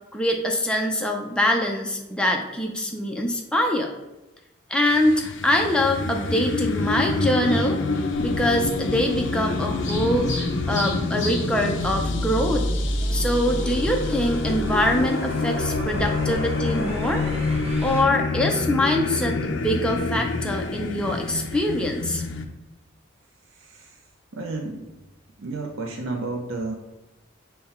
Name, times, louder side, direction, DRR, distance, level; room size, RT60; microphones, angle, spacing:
voice 1, 0.1-3.9 4.7-7.8 8.2-12.7 13.1-17.2 17.8-22.2, left 1 dB, 5° left, 1 dB, 0.4 m, -24 dB
sound 1, 4.9-22.5, left 3 dB, 65° left, 0.4 m, -27 dB
sound 2, 6.3-15.6, left 1 dB, 35° left, 1.2 m, -40 dB
sound 3, 8.1-18.0, equal, 30° right, 0.8 m, -31 dB
voice 2, 23.5-24.0 24.3-24.9 25.4-26.7, right 3 dB, 85° right, 1 dB, 0.5 m, -32 dB
5.6 x 2.2 x 4.2 m, 0.99 s
head